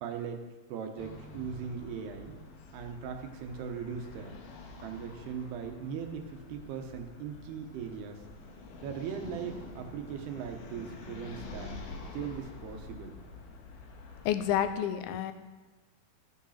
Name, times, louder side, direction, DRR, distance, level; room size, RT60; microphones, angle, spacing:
voice 1, 0.0-0.4 0.7-2.4 2.7-4.4 4.8-8.2 8.8-11.8 12.1-13.2, right 7 dB, 90° right, 5 dB, 3.1 m, -39 dB
sound 1, 1.0-14.7, left 3 dB, 65° left, 2.7 m, -47 dB
voice 2, 14.3-15.3, left 10 dB, 80° left, 10 dB, 2.3 m, -29 dB
15.0 x 6.3 x 5.7 m, 1.2 s
omnidirectional pair, 4.5 m